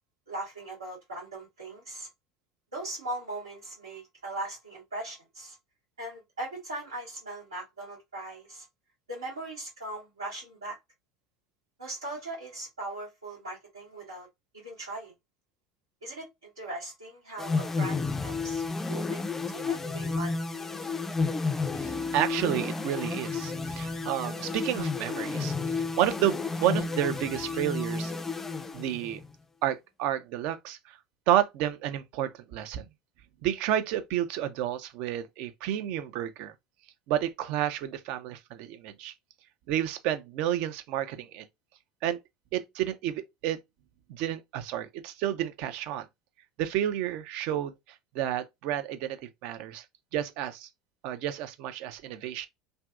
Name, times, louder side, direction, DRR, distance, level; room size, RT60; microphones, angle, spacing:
voice 1, 0.3-2.1 2.7-5.5 6.0-8.6 9.1-10.8 11.8-14.3 14.5-15.1 16.0-20.4, right 2 dB, 85° right, 1.0 m, -39 dB
sound 1, 17.4-29.3, left 4 dB, 15° left, 0.3 m, -31 dB
voice 2, 21.7-28.1 28.7-29.2 29.6-31.0 31.3-32.8 33.4-36.5 37.1-39.1 39.7-41.4 42.0-42.2 42.5-43.6 44.1-46.1 46.6-47.7 48.1-49.8 50.1-50.7 51.0-52.5, right 11 dB, 60° right, 0.4 m, -30 dB
2.5 x 2.2 x 2.3 m
figure-of-eight pair, 70°, 2 cm